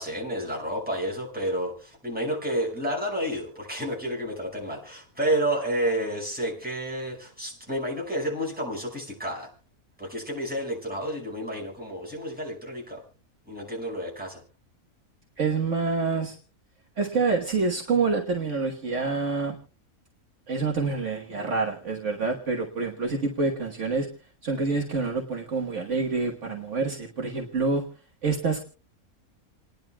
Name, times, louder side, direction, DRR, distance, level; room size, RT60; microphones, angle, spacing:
voice 1, 0.0-9.5 10.0-13.0 13.5-14.4, right 1 dB, 5° right, -2 dB, 5.4 m, -30 dB
voice 2, 15.4-16.4 17.0-19.6 20.5-24.1 24.4-27.8 28.2-28.6, right 4 dB, 55° right, 1 dB, 1.6 m, -27 dB
29.0 x 10.5 x 2.3 m, 0.35 s
omnidirectional pair, 1.5 m